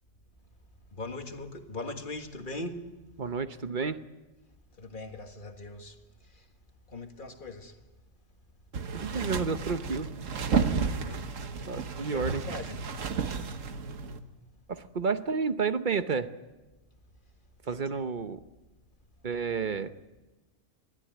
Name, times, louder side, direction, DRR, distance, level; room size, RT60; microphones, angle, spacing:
voice 1, 0.9-2.8 4.8-6.0 6.3-6.4 6.9-7.8 10.5-11.5 12.0-12.8 17.6-17.9, left 2 dB, 40° left, 1.9 m, -40 dB
voice 2, 3.2-4.0 8.9-10.1 11.7-12.4 14.7-16.3 17.7-18.4 19.2-19.9, right 5 dB, 40° right, 0.9 m, -30 dB
sound 1, 8.7-14.2, right 5 dB, 75° right, 1.5 m, -32 dB
21.5 x 13.5 x 9.3 m
omnidirectional pair, 1.3 m